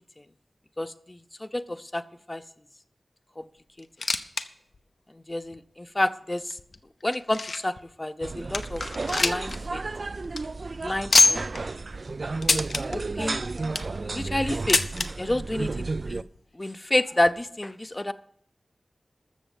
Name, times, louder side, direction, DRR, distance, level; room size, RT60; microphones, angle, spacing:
voice 1, 0.8-2.0 2.3-2.4 3.4-3.5 5.3-6.6 7.0-8.8 9.2-9.8 10.8-11.4 12.9-13.4 14.0-14.8 15.2-16.2 16.5-18.1, left 1 dB, 25° left, 13 dB, 0.6 m, -29 dB
sound 1, 3.8-4.5 4.7-4.8 5.5-5.6 6.3-7.8 8.2-8.3 8.5-9.6 9.9-10.0 10.2-10.4 11.1-11.6 12.4-12.8 13.4-14.0 14.7-15.1 16.0-16.1 16.3-16.4 17.3-17.4, left 3 dB, 65° left, 0.8 m, -23 dB
sound 2, 8.2-16.2, right 3 dB, 55° right, 0.4 m, -32 dB
13.5 x 6.9 x 7.1 m, 0.67 s
wide cardioid pair, 75°, 0 cm